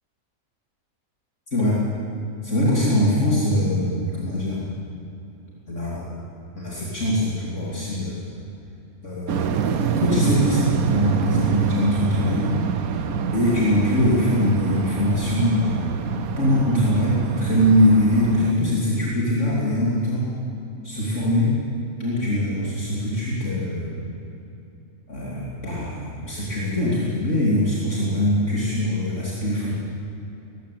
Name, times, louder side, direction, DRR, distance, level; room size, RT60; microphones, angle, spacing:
voice 1, 1.5-1.8 2.4-4.6 5.7-6.1 6.5-8.2 9.0-12.5 13.3-15.9 16.4-20.3 20.8-21.5 21.9-24.0 25.1-29.7, left 1 dB, 60° left, -7 dB, 3.4 m, -22 dB
sound 1, 9.3-18.5, right 7 dB, 90° right, 1.3 m, -26 dB
20.0 x 15.5 x 8.7 m, 2.8 s
omnidirectional pair, 1.5 m